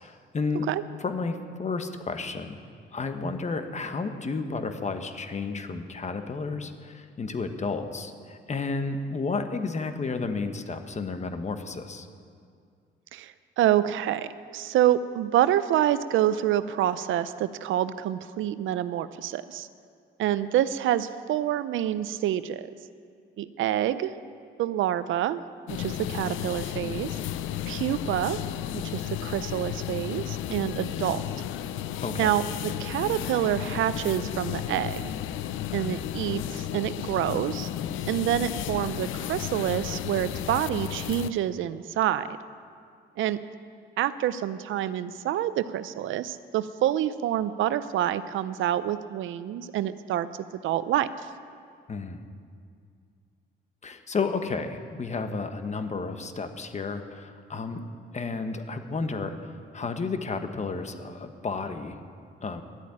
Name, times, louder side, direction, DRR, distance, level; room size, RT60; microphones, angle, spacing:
voice 1, 0.0-0.7 1.0-2.6 2.9-12.1 32.0-32.3 51.9-52.2 53.8-57.8 58.1-62.0 62.4-62.6, left 4 dB, 35° left, 8 dB, 1.2 m, -32 dB
voice 2, 13.1-19.7 20.2-22.7 23.4-24.1 24.6-25.4 25.7-27.2 27.7-28.4 28.7-31.2 32.2-35.1 35.7-37.7 38.1-42.3 43.2-43.4 44.0-50.3 50.6-51.1, right 12 dB, 80° right, 14 dB, 0.6 m, -27 dB
sound 1, 25.7-41.3, left 11 dB, 80° left, 0.5 m, -33 dB
12.5 x 8.4 x 9.8 m, 2.2 s
cardioid pair, 90°, 20 cm